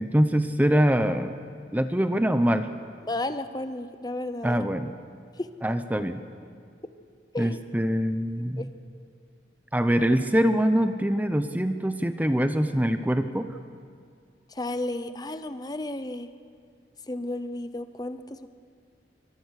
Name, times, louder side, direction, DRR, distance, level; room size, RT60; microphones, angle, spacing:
voice 1, 0.0-1.3 1.7-2.7 4.4-4.9 5.6-6.2 7.4-8.7 9.7-13.5, equal, 10° right, 9 dB, 0.7 m, -24 dB
voice 2, 3.0-4.6 5.4-5.5 7.3-7.6 8.6-8.7 14.5-16.3 17.1-18.5, left 2 dB, 20° left, 10 dB, 0.8 m, -33 dB
24.0 x 22.0 x 6.5 m, 2.2 s
head